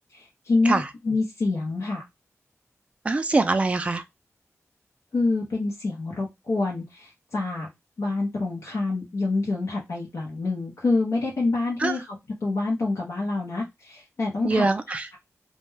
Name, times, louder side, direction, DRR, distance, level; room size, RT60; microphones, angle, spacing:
voice 1, 0.1-2.0 5.1-7.7 8.0-14.7, left 3 dB, 75° left, 0.7 m, -27 dB
voice 2, 3.0-4.0 11.8-12.0 14.4-15.1, right 3 dB, 25° right, 0.3 m, -23 dB
2.2 x 2.1 x 3.1 m
wide cardioid pair, 120°, 5 cm